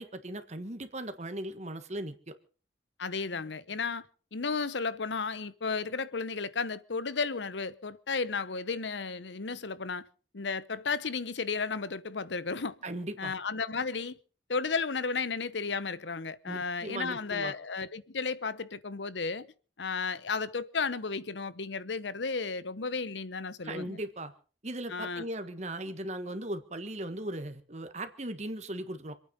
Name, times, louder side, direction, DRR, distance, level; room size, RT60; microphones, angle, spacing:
voice 1, 0.0-2.3 12.8-13.4 16.5-17.5 23.6-24.3 24.6-29.2, right 1 dB, 40° right, 1.5 m, -38 dB
voice 2, 3.0-4.0 4.3-10.1 10.3-12.8 13.2-14.2 14.5-19.5 19.8-24.0 24.9-25.3, left 4 dB, 85° left, 0.9 m, -33 dB
26.5 x 9.3 x 5.4 m
head